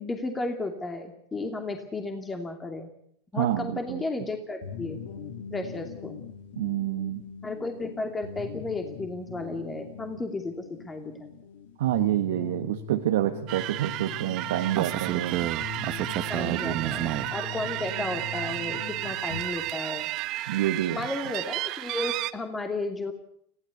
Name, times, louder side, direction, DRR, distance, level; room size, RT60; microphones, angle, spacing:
voice 1, 0.0-2.9 3.3-5.0 5.5-6.2 7.4-10.5 10.8-11.3 15.4-15.5 16.3-20.1 20.9-23.1, left 2 dB, 15° left, 5 dB, 2.7 m, -33 dB
voice 2, 3.3-4.0 6.6-7.2 11.8-15.4 16.4-16.9 20.5-21.0, right 13 dB, 70° right, 5 dB, 1.3 m, -28 dB
sound 1, 4.6-19.4, left 5 dB, 70° left, 2.9 m, -41 dB
sound 2, 13.5-22.3, right 16 dB, 50° right, 1.0 m, -31 dB
21.0 x 15.5 x 8.4 m, 0.69 s
hypercardioid pair, 100°, 0 cm